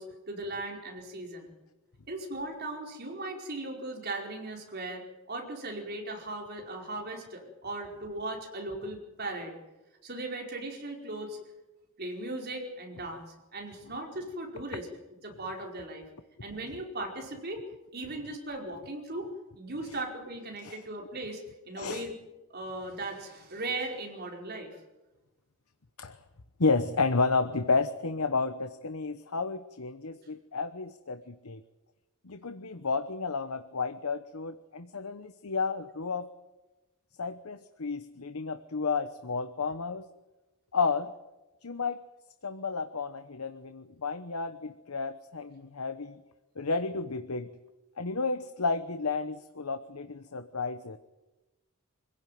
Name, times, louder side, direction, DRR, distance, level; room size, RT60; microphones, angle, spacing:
voice 1, 0.0-1.5 2.1-9.5 10.0-11.4 12.0-13.2 13.5-14.9 15.2-16.0 16.4-17.6 17.9-19.3 19.5-22.2 22.5-24.7, right 2 dB, 45° right, 1 dB, 5.0 m, -38 dB
voice 2, 21.8-22.1 26.0-26.2 26.6-31.6 32.2-36.3 37.2-40.1 40.7-41.1 41.6-42.0 42.4-46.2 46.6-47.5 48.0-51.0, left 4 dB, 85° left, 9 dB, 1.0 m, -31 dB
25.5 x 16.5 x 9.4 m, 1.1 s
head